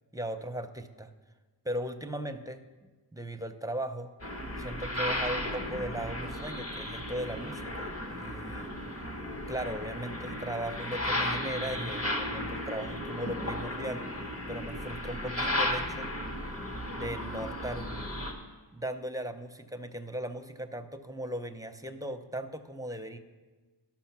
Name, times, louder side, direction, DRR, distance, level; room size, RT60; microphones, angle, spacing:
voice 1, 0.1-1.1 1.6-4.1 4.6-8.7 9.5-14.1 14.5-16.1 16.9-17.9 18.7-23.2, right 1 dB, 10° right, 8 dB, 0.6 m, -38 dB
sound 1, 4.2-18.3, left 1 dB, 30° left, 1.2 m, -35 dB
12.5 x 6.0 x 5.9 m, 1.3 s
wide cardioid pair, 110°, 45 cm